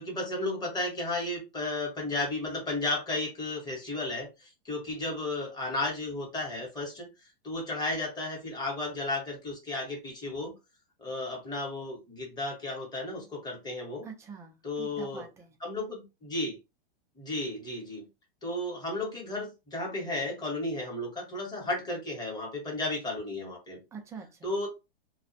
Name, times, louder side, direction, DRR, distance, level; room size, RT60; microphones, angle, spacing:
voice 1, 0.0-7.1 7.4-10.5 11.0-14.1 14.6-15.2 15.6-16.5 17.2-18.0 18.4-23.8 24.4-24.7, left 2 dB, 15° left, 0.9 m, -33 dB
voice 2, 14.0-15.5 23.9-24.5, right 5 dB, 10° right, 0.3 m, -45 dB
2.4 x 2.1 x 2.5 m
hypercardioid pair, 130°, 31 cm